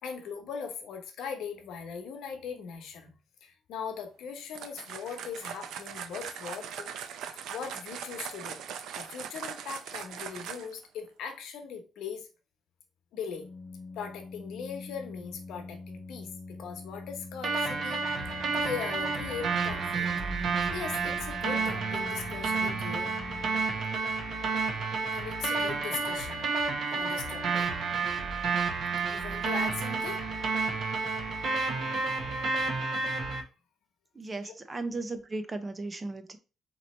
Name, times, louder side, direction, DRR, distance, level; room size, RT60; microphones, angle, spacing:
voice 1, 0.0-3.1 3.4-6.9 7.5-8.6 8.9-12.3 13.1-13.5 13.9-18.0 18.5-20.1 20.4-23.1 25.1-26.5 26.9-27.7 29.0-30.2 33.2-33.3 34.4-34.5, left 6 dB, 80° left, 1.0 m, -40 dB
sound 1, 4.5-10.8, right 8 dB, 80° right, 0.5 m, -40 dB
Organ, 13.3-24.1, left 3 dB, 25° left, 0.6 m, -44 dB
sound 2, 17.4-33.4, right 4 dB, 50° right, 0.9 m, -30 dB
voice 2, 34.2-36.4, right 2 dB, 20° right, 0.5 m, -36 dB
4.0 x 3.0 x 4.2 m
cardioid pair, 170°, 0 cm